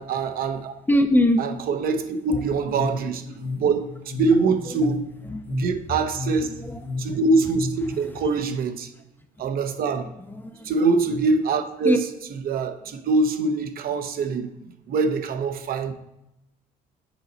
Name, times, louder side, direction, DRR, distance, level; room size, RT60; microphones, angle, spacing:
voice 1, 0.0-0.7 1.4-5.1 5.5-6.5 7.0-8.9 9.4-10.1 10.6-12.0 12.5-14.5 14.9-15.9, right 3 dB, 60° right, 8 dB, 0.8 m, -24 dB
voice 2, 0.9-1.4 2.3-2.4 4.7-4.8 5.2-5.4 6.4-7.2 7.9-8.0 10.3-10.7 11.8-12.0 12.9-13.0, left 1 dB, 10° left, 6 dB, 0.5 m, -23 dB
sound 1, 2.6-7.8, left 3 dB, 90° left, 1.6 m, -34 dB
7.2 x 4.0 x 4.0 m, 0.87 s
cardioid pair, 110°, 17 cm